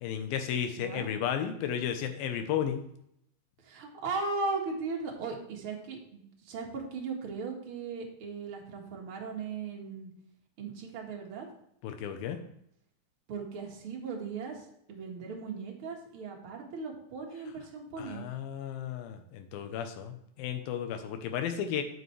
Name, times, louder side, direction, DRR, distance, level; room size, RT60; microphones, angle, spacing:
voice 1, 0.0-2.8 11.8-12.5 18.0-21.8, left 9 dB, 90° left, 7 dB, 2.7 m, -33 dB
voice 2, 0.8-1.1 3.6-10.1 10.6-11.5 13.3-18.2, right 4 dB, 45° right, 0 dB, 2.0 m, -37 dB
9.4 x 7.9 x 3.3 m, 0.74 s
omnidirectional pair, 4.0 m